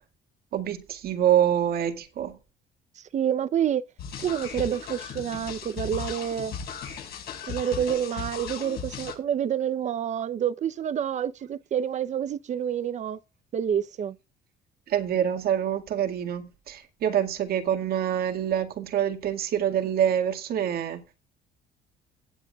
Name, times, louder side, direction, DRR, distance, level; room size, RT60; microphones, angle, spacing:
voice 1, 0.5-2.3 14.9-21.0, right 10 dB, 65° right, 2.0 m, -26 dB
voice 2, 3.1-3.8 4.2-6.5 7.5-13.2 13.5-14.1, right 9 dB, 45° right, 0.8 m, -28 dB
sound 1, 4.0-9.1, left 6 dB, 70° left, 5.7 m, -37 dB
17.5 x 8.2 x 2.4 m
cardioid pair, 110°, 17 cm